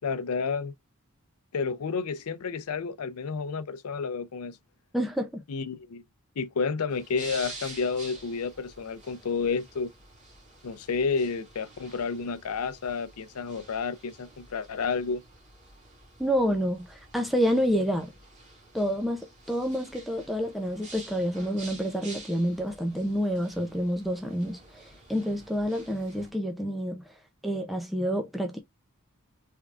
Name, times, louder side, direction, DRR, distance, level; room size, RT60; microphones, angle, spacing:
voice 1, 0.0-0.7 1.5-4.6 5.5-6.0 6.4-9.9 10.6-15.2, left 5 dB, 90° left, 0.5 m, -30 dB
voice 2, 4.9-5.4 16.2-18.1 18.7-27.2 27.4-28.6, equal, ahead, 0.4 m, -28 dB
sound 1, 6.9-26.3, right 2 dB, 35° right, 1.9 m, -49 dB
3.5 x 3.5 x 2.3 m
head